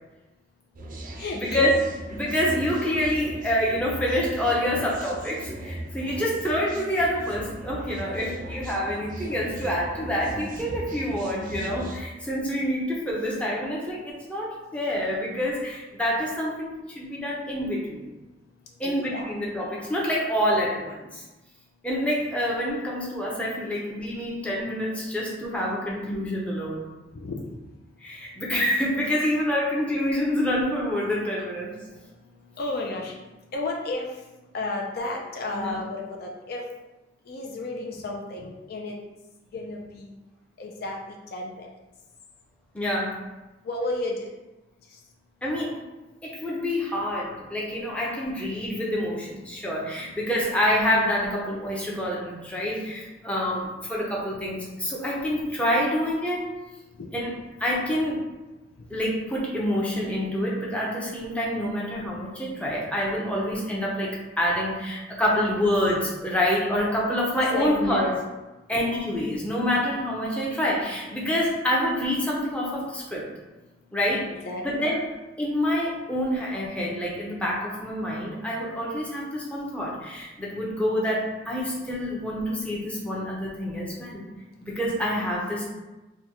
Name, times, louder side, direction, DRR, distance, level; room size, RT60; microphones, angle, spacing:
sound 1, 0.8-12.0, right 1 dB, 50° right, 0.5 m, -38 dB
voice 1, 1.2-1.7 18.8-19.6 27.1-27.4 32.2-34.2 34.5-36.6 37.3-39.0 39.5-40.1 40.6-41.0 41.3-41.7 43.6-44.3 44.9-45.0 55.3-55.4 57.0-57.1 67.5-68.2 74.3-74.9, left 2 dB, 60° left, 0 dB, 0.4 m, -32 dB
voice 2, 2.1-18.1 18.8-21.2 21.8-26.9 28.0-31.7 35.5-35.8 42.7-43.2 45.4-45.8 46.2-56.4 57.1-57.3 57.6-58.2 58.9-68.0 68.7-73.2 73.9-74.3 74.6-75.0 75.4-84.2 84.6-85.7, equal, 5° left, -4 dB, 0.6 m, -27 dB
3.4 x 2.2 x 2.9 m, 1.1 s
head